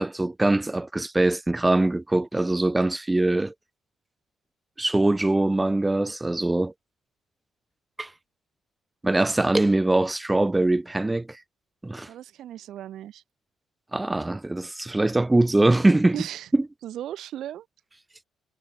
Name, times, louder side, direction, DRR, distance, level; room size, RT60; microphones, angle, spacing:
voice 1, 0.0-3.5 4.8-6.7 8.0-8.1 9.0-11.4 11.8-12.1 13.9-16.2 16.5-16.6, right 2 dB, 15° right, 1.3 m, -22 dB
voice 2, 12.1-13.2 16.1-16.5 16.8-17.7, right 12 dB, 75° right, 4.7 m, -36 dB
cardioid pair, 90°, 0 cm